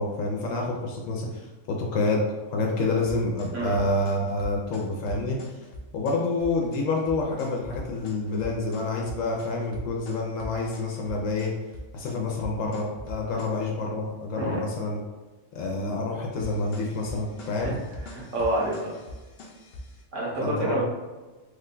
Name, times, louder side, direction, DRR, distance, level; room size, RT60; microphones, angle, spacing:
voice 1, 0.0-2.2 2.5-5.4 5.9-11.5 11.9-15.0 15.5-17.8 20.4-20.8, left 2 dB, 85° left, -1 dB, 1.0 m, -28 dB
sound 1, 3.1-13.6 16.4-20.0, left 1 dB, 60° left, 0.8 m, -41 dB
voice 2, 18.1-18.9 20.1-20.8, right 1 dB, 70° right, -4 dB, 1.3 m, -28 dB
3.3 x 2.2 x 3.7 m, 1.3 s
omnidirectional pair, 1.3 m